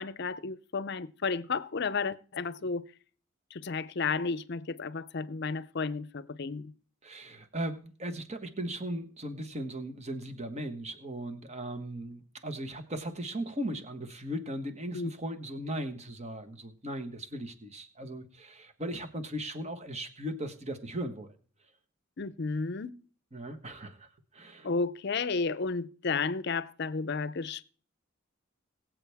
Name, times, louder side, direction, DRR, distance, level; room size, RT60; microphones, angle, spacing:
voice 1, 0.0-2.8 3.5-6.7 14.9-15.1 22.2-22.9 24.6-27.6, left 4 dB, 55° left, 0.6 m, -32 dB
voice 2, 7.0-21.4 23.3-24.7, right 1 dB, 30° right, 1.3 m, -38 dB
21.5 x 7.7 x 3.5 m
head